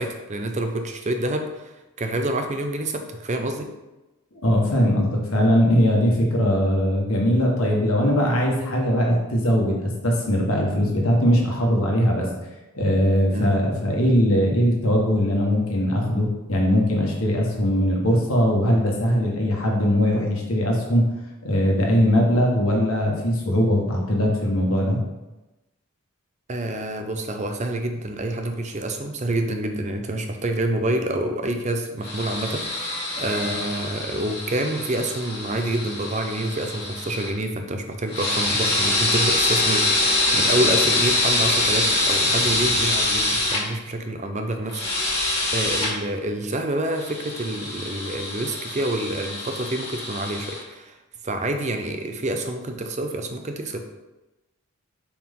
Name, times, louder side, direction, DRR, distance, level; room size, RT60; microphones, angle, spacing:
voice 1, 0.0-1.7 2.0-3.7 13.3-13.5 26.5-51.0 51.2-53.8, right 1 dB, 35° right, 5 dB, 0.6 m, -27 dB
voice 2, 4.4-12.3 12.7-21.1 21.4-25.0, equal, 80° left, -1 dB, 1.4 m, -20 dB
sound 1, 32.0-37.3 38.1-43.6 44.7-45.9 46.9-50.6, left 2 dB, 25° left, 2.0 m, -24 dB
5.6 x 4.7 x 3.6 m, 1.0 s
head